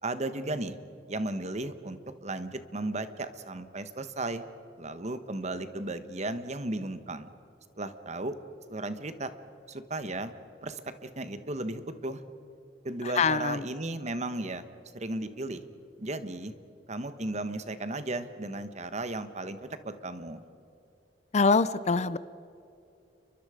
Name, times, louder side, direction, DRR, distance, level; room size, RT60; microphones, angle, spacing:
voice 1, 0.0-0.8 1.1-4.4 4.8-7.3 7.8-8.3 8.7-9.3 9.7-10.3 10.6-12.2 12.8-14.6 14.9-15.6 16.0-16.5 16.9-20.4, right 2 dB, 40° right, 10 dB, 1.4 m, -35 dB
voice 2, 13.0-13.7 21.3-22.2, left 4 dB, 40° left, 16 dB, 0.6 m, -24 dB
30.0 x 23.5 x 5.1 m, 2.6 s
head